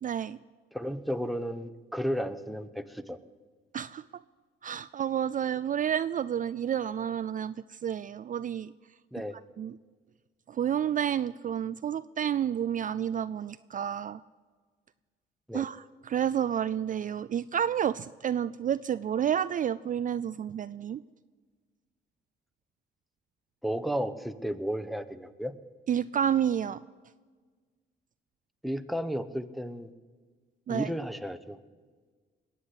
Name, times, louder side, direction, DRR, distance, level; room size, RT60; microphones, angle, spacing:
voice 1, 0.0-0.4 3.7-4.0 4.6-8.7 9.6-9.8 10.5-14.2 15.5-15.8 16.1-21.0 25.9-26.8 30.7-30.9, right 9 dB, 45° right, 15 dB, 0.4 m, -30 dB
voice 2, 0.7-3.2 9.1-9.4 15.5-15.6 23.6-25.6 28.6-29.9 30.7-31.6, equal, ahead, 10 dB, 0.9 m, -33 dB
20.5 x 8.5 x 8.2 m, 1.5 s
cardioid pair, 90°, 20 cm